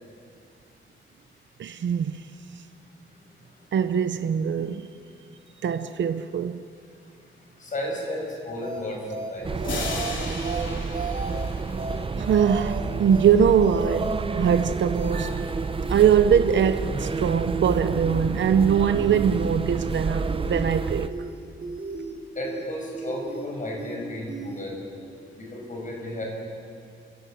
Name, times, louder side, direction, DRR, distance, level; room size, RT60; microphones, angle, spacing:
voice 1, 1.6-2.2 3.7-4.9 5.6-6.6 12.2-15.3 15.9-21.1, right 7 dB, 65° right, 0.8 m, -22 dB
voice 2, 7.6-9.5 22.3-24.8 25.4-26.2, left 1 dB, 40° left, 6.4 m, -33 dB
sound 1, 8.6-8.8 9.1-9.3 9.6-10.1 10.4-10.6 10.9-11.5 11.8-12.0 12.3-12.8 13.1-13.3 13.6-14.1 14.4-14.6 14.9-15.5 15.8-16.0 16.3-16.8 17.1-17.3 17.6-18.1 18.4-18.6 18.9-19.5 19.8-20.0 20.3-20.8 21.1-21.3 21.6-22.1 22.4-22.6 22.9-23.5 23.8-24.0 24.3-24.6, right 4 dB, 45° right, 4.3 m, -35 dB
sound 2, 9.4-21.1, right 4 dB, 25° right, 0.7 m, -29 dB
sound 3, 9.6-12.3, left 3 dB, 70° left, 3.2 m, -35 dB
28.5 x 16.0 x 7.7 m
wide cardioid pair, 160°, 20 cm